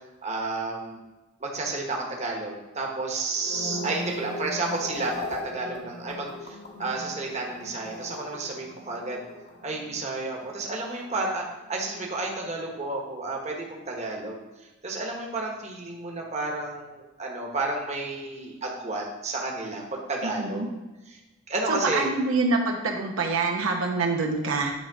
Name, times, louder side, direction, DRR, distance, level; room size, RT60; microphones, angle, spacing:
voice 1, 0.2-1.0 1.4-9.2 9.6-14.4 14.8-20.6 21.5-22.1, right 2 dB, 35° right, 0 dB, 1.2 m, -31 dB
sound 1, 3.3-11.7 11.9-12.3, left 1 dB, 60° left, 1.5 m, -39 dB
voice 2, 20.2-20.7 21.7-24.7, right 3 dB, 85° right, 1 dB, 0.9 m, -26 dB
9.4 x 3.5 x 4.8 m, 1.1 s
head